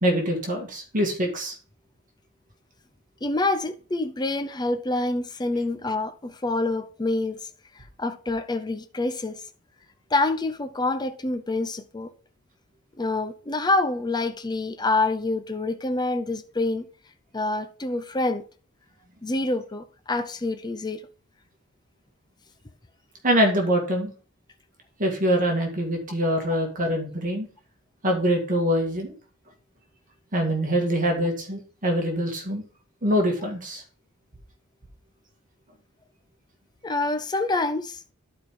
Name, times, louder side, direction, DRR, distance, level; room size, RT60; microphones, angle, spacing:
voice 1, 0.0-1.5 23.2-24.1 25.0-27.5 28.0-29.1 30.3-32.6 33.0-33.8, equal, 40° right, 2.0 m, -24 dB
voice 2, 3.2-7.4 8.0-9.4 10.1-12.1 13.0-16.9 17.3-18.4 19.2-21.0 36.8-38.0, left 2 dB, 20° left, 0.6 m, -26 dB
11.5 x 4.9 x 3.7 m
head